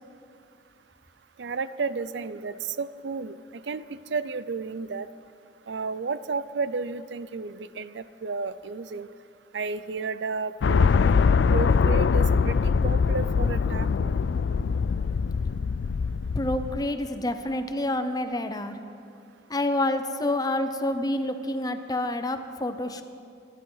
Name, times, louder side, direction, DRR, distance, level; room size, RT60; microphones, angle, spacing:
voice 1, 1.4-5.1 5.7-9.1 9.5-10.9 11.5-14.1, right 4 dB, 70° right, 15 dB, 0.5 m, -32 dB
sound 1, 10.6-16.8, left 5 dB, 70° left, 0.4 m, -23 dB
voice 2, 16.3-18.7 19.5-23.0, left 1 dB, 20° left, 8 dB, 0.8 m, -28 dB
26.0 x 11.5 x 4.0 m, 2.6 s
head